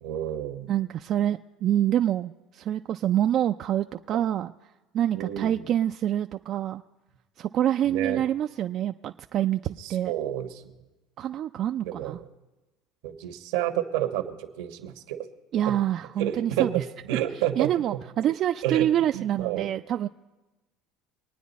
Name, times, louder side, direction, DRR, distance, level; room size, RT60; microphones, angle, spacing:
voice 1, 0.0-0.7 5.1-5.7 7.9-8.2 9.8-10.7 11.8-12.2 13.0-15.3 15.7-15.8 16.2-17.7 18.6-18.9 19.1-19.7, right 12 dB, 85° right, 6 dB, 1.2 m, -30 dB
voice 2, 0.7-4.5 4.9-6.8 7.4-10.1 11.2-12.2 15.5-16.8 17.6-20.1, right 11 dB, 50° right, 7 dB, 0.4 m, -26 dB
24.0 x 9.4 x 4.1 m, 1.1 s
supercardioid pair, 105°, 0 cm